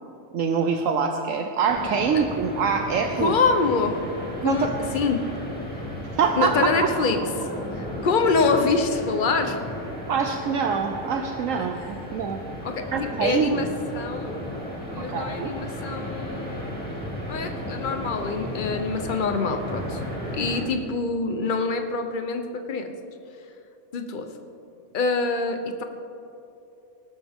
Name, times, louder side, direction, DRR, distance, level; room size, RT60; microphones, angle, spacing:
voice 1, 0.3-3.4 4.4-4.7 6.2-6.9 10.1-12.4 12.9-13.7 15.0-15.5, right 6 dB, 70° right, 5 dB, 1.0 m, -24 dB
sound 1, 1.6-20.6, equal, 5° left, 2.5 m, -34 dB
voice 2, 3.2-4.0 4.4-4.7 4.9-5.3 6.4-9.6 12.6-14.4 14.9-16.7 17.3-20.0 20.3-22.9 23.9-24.3 24.9-25.8, left 4 dB, 40° left, 6 dB, 1.0 m, -25 dB
19.5 x 12.0 x 3.7 m, 2.9 s
omnidirectional pair, 1.5 m